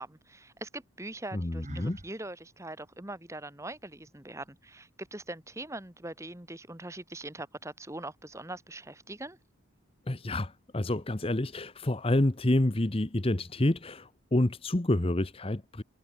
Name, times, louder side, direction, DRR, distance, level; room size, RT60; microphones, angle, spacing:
voice 1, 0.0-9.4, right 2 dB, 15° right, 1.7 m, -42 dB
voice 2, 1.3-2.0 10.1-15.8, left 1 dB, 25° left, 0.9 m, -28 dB
Sigh, 1.6-2.1, right 1 dB, 35° right, 1.3 m, -45 dB
head